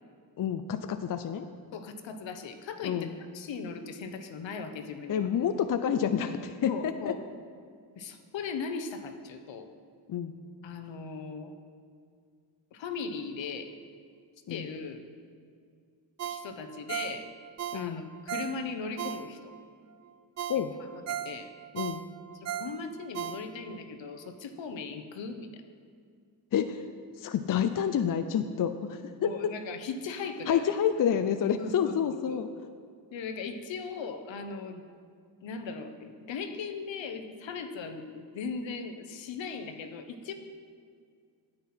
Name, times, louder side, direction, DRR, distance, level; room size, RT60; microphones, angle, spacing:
voice 1, 0.4-1.4 2.8-3.1 5.1-7.1 10.1-10.3 14.5-14.7 17.7-18.0 20.5-20.7 21.7-22.0 26.5-26.9 27.2-29.5 30.5-32.5, left 8 dB, 45° left, 9 dB, 0.5 m, -29 dB
voice 2, 1.7-5.3 6.7-7.2 8.0-9.7 10.6-11.5 12.7-13.7 14.5-15.0 16.2-17.3 17.7-19.5 21.2-21.5 22.3-25.6 29.2-30.7 31.6-32.4 33.1-34.8 35.4-40.3, left 5 dB, 70° left, 7 dB, 0.9 m, -38 dB
Ringtone, 16.2-19.6 20.0-20.1 20.4-23.8 24.2-24.3, right 10 dB, 35° right, 0.4 m, -37 dB
9.6 x 8.0 x 4.3 m, 2.2 s
cardioid pair, 65°, 47 cm